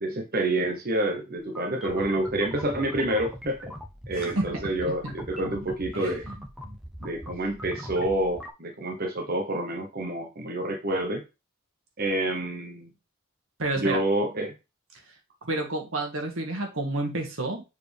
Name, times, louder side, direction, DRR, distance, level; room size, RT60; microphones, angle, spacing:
voice 1, 0.0-3.7 4.1-6.2 7.0-11.2 12.0-12.9 13.7-14.5, right 1 dB, 45° right, 2 dB, 1.0 m, -28 dB
sound 1, 1.4-8.5, equal, ahead, 0.8 m, -41 dB
voice 2, 4.2-5.0 5.9-6.4 6.6-6.8 13.6-14.0 15.4-17.6, right 2 dB, 75° right, 3 dB, 1.9 m, -30 dB
7.1 x 4.3 x 3.4 m, 0.27 s
head